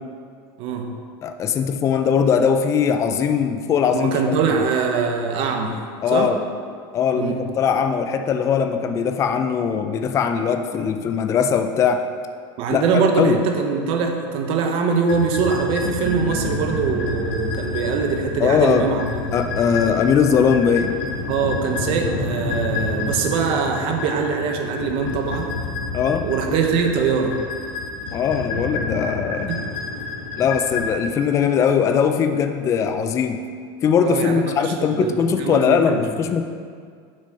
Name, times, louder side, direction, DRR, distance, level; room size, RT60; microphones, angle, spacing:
voice 1, 0.6-1.0 3.9-5.8 6.1-6.3 7.1-7.4 12.6-19.3 21.3-25.5 26.2-27.4 29.5-29.6 34.0-36.0, right 5 dB, 50° right, 3 dB, 0.9 m, -22 dB
voice 2, 1.2-4.1 6.0-6.4 6.9-12.0 12.7-13.4 18.4-18.9 19.3-21.0 25.9-26.3 28.1-29.5 30.4-33.4 33.8-36.4, left 7 dB, 25° left, 7 dB, 0.4 m, -20 dB
sound 1, 15.1-30.9, left 2 dB, 70° left, 1.4 m, -29 dB
6.2 x 4.2 x 6.3 m, 2.1 s
supercardioid pair, 140°, 12 cm